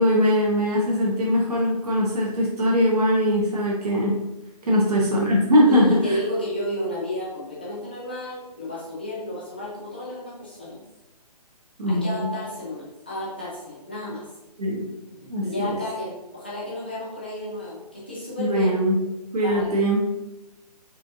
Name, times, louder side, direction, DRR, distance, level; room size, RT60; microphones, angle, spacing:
voice 1, 0.0-4.1 4.7-6.2 11.8-12.3 14.6-14.9 15.3-15.8 18.4-19.0 19.3-20.0, equal, 70° right, -3 dB, 0.9 m, -21 dB
voice 2, 5.6-10.8 11.8-14.2 15.2-18.7 19.4-19.8, left 1 dB, 15° left, -7 dB, 0.5 m, -32 dB
4.3 x 2.6 x 2.4 m, 0.99 s
hypercardioid pair, 175°, 21 cm